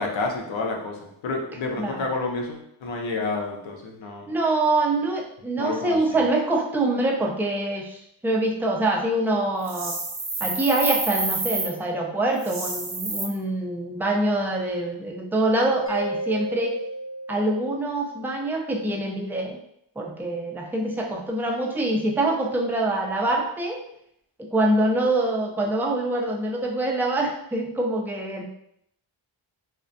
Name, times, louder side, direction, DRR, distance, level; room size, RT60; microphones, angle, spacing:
voice 1, 0.0-4.3 5.6-6.2, left 3 dB, 65° left, 2 dB, 0.6 m, -30 dB
voice 2, 1.6-2.1 4.3-10.0 10.4-16.7 17.3-19.6 20.0-23.8 24.4-28.5, right 2 dB, 5° right, -1 dB, 0.4 m, -25 dB
sound 1, 9.6-11.7 12.4-13.2, right 3 dB, 45° right, 0.7 m, -28 dB
Mallet percussion, 15.9-18.4, right 1 dB, 25° left, 0.8 m, -34 dB
2.4 x 2.1 x 2.5 m, 0.73 s
cardioid pair, 50°, 49 cm